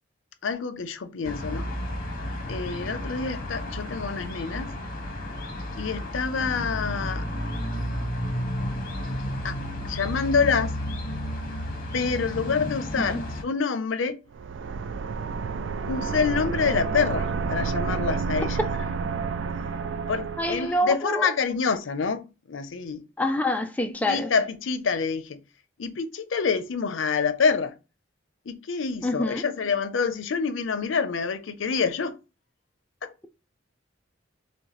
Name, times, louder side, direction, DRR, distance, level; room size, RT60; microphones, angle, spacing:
voice 1, 0.4-1.7 2.5-4.7 5.8-7.3 9.4-9.6 9.8-10.7 11.9-14.2 15.9-18.6 20.1-23.0 23.9-25.4 25.8-27.7 28.5-32.2 33.0-33.1, left 5 dB, 85° left, 0.6 m, -27 dB
sound 1, 1.2-13.4, left 1 dB, 45° left, 1.1 m, -32 dB
sound 2, 14.3-20.8, right 5 dB, 70° right, 0.4 m, -30 dB
voice 2, 20.4-21.3 23.2-24.3 29.0-29.4, left 1 dB, 10° left, 0.4 m, -26 dB
6.5 x 2.3 x 3.0 m
head